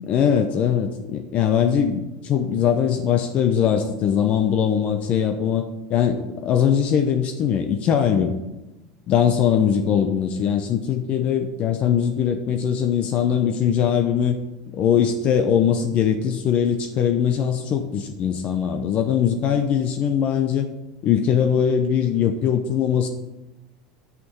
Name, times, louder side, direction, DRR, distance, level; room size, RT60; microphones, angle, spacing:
voice 1, 0.1-8.4 9.1-14.4 14.7-20.7 21.0-23.1, left 8 dB, 45° left, 7 dB, 0.8 m, -21 dB
6.8 x 5.9 x 7.0 m, 1.0 s
supercardioid pair, 105°, 3 cm